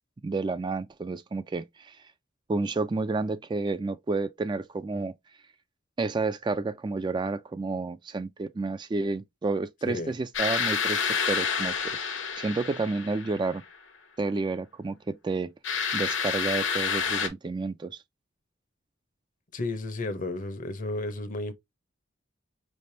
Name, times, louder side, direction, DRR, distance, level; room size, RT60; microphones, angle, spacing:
voice 1, 0.2-2.0 2.5-5.1 6.0-13.6 14.2-15.5 15.9-18.0, right 3 dB, 25° right, 0.3 m, -30 dB
sound 1, 10.3-13.6 15.6-17.3, left 6 dB, 65° left, 1.0 m, -29 dB
voice 2, 19.5-21.5, left 2 dB, 40° left, 0.7 m, -32 dB
5.1 x 3.3 x 2.6 m
head